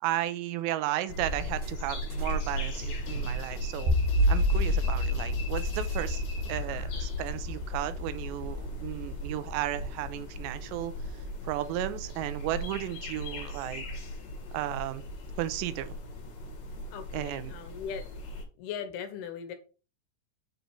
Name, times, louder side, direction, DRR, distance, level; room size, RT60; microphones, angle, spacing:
voice 1, 0.0-3.9 4.3-6.2 6.5-10.9 11.4-13.9 14.5-15.0 15.4-16.0 17.1-17.5, right 13 dB, 90° right, 2.8 m, -34 dB
sound 1, 1.1-18.4, equal, 55° left, 2.2 m, -37 dB
sound 2, 1.5-2.4 2.7-3.7 4.1-7.3, left 1 dB, 40° right, 1.7 m, -45 dB
sound 3, 3.9-11.1, left 1 dB, 70° right, 2.0 m, -30 dB
voice 2, 16.9-18.0 18.6-19.5, left 7 dB, 80° left, 2.6 m, -39 dB
7.0 x 3.9 x 4.5 m
omnidirectional pair, 4.9 m